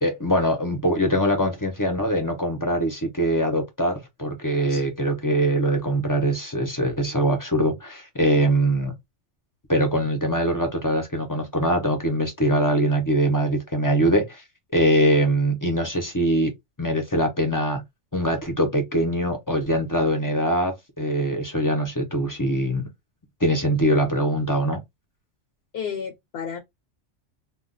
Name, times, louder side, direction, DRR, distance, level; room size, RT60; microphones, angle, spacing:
voice 1, 0.0-8.9 9.7-14.4 14.7-16.5 16.8-17.8 18.1-22.9 23.4-24.8, equal, 25° left, 0.4 m, -22 dB
voice 2, 25.7-26.6, left 7 dB, 65° left, 0.8 m, -32 dB
2.3 x 2.2 x 3.7 m
omnidirectional pair, 1.2 m